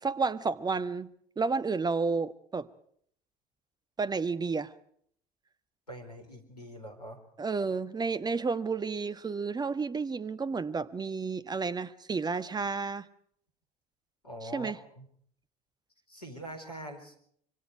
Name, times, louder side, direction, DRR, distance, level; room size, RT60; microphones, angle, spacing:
voice 1, 0.0-1.1 1.4-2.7 4.0-4.7 7.4-13.1 14.4-14.8, right 4 dB, 20° right, 13 dB, 1.4 m, -31 dB
voice 2, 5.9-7.2 14.2-15.1 16.1-17.1, right 1 dB, 85° left, 3 dB, 4.3 m, -43 dB
25.5 x 24.5 x 4.7 m, 0.63 s
figure-of-eight pair, 60°, 20 cm